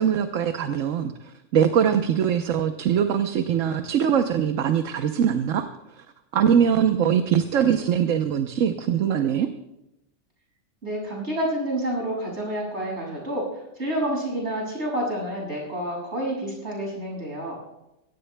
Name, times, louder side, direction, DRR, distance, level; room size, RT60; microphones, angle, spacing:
voice 1, 0.0-5.6 6.3-9.5, right 8 dB, 80° right, 7 dB, 1.2 m, -22 dB
voice 2, 10.8-17.6, right 1 dB, 60° right, -2 dB, 7.0 m, -29 dB
23.0 x 17.5 x 2.2 m, 0.92 s
omnidirectional pair, 1.3 m